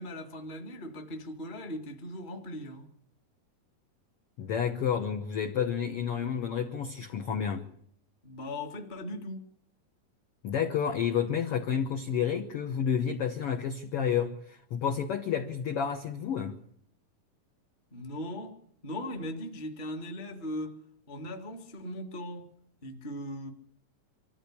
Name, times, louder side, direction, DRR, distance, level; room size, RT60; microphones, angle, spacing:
voice 1, 0.0-2.9 8.2-9.5 17.9-20.8 21.1-22.5 22.8-23.5, left 1 dB, 25° left, 1.1 m, -39 dB
voice 2, 4.4-7.7 10.4-16.6, left 7 dB, 65° left, 1.4 m, -30 dB
24.5 x 13.5 x 8.4 m
omnidirectional pair, 4.0 m